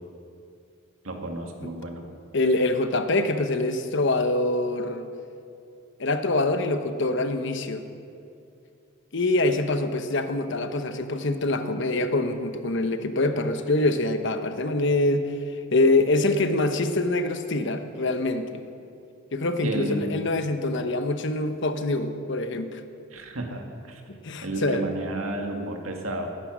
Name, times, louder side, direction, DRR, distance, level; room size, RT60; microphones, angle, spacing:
voice 1, 1.0-2.1 19.6-20.1 23.1-24.0 24.4-26.3, right 2 dB, 85° right, 3 dB, 1.9 m, -32 dB
voice 2, 2.3-5.1 6.0-7.8 9.1-18.6 19.3-22.8 24.1-24.8, left 2 dB, 60° left, 8 dB, 1.0 m, -25 dB
18.5 x 10.0 x 6.2 m, 2.5 s
head